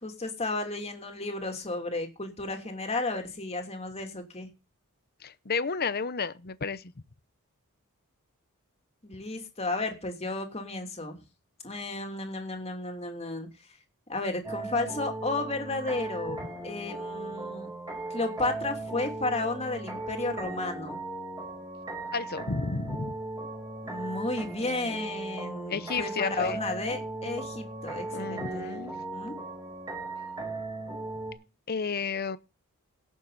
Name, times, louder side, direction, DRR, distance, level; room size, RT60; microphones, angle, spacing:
voice 1, 0.0-4.5 9.0-11.2 11.6-13.5 14.1-17.7 18.1-21.0 23.8-28.7 29.1-29.4, left 2 dB, 30° left, 3.0 m, -33 dB
voice 2, 5.2-6.9 22.1-23.2 25.7-26.6 28.1-28.9 31.7-32.4, left 5 dB, 45° left, 0.8 m, -32 dB
sound 1, 14.4-31.3, right 2 dB, 15° right, 4.9 m, -37 dB
17.5 x 7.4 x 4.1 m
head